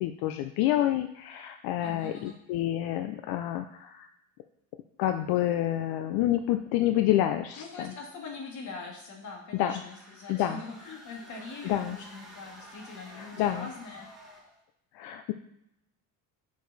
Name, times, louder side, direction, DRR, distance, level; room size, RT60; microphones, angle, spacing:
voice 1, 0.0-4.1 5.0-7.9 9.5-9.7 10.3-10.6 11.6-12.0 13.1-13.7 14.9-15.3, left 13 dB, 85° left, 7 dB, 0.5 m, -28 dB
voice 2, 1.8-2.4 7.6-14.1, left 4 dB, 55° left, 0 dB, 1.9 m, -42 dB
sound 1, 9.7-14.6, equal, ahead, 1.7 m, -51 dB
6.2 x 4.8 x 4.0 m, 0.82 s
cardioid pair, 110°, 36 cm